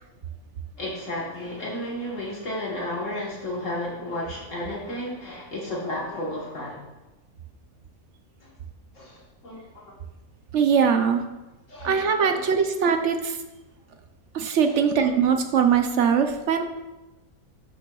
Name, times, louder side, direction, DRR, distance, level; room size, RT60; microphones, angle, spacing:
voice 1, 0.8-6.8 8.9-9.6 11.7-12.5 14.6-14.7 15.0-15.1, left 1 dB, 60° left, -4 dB, 1.6 m, -33 dB
voice 2, 10.5-11.2 11.8-13.4 14.3-16.6, right 7 dB, 65° right, 6 dB, 0.8 m, -21 dB
11.0 x 6.7 x 2.3 m, 1.1 s
omnidirectional pair, 1.5 m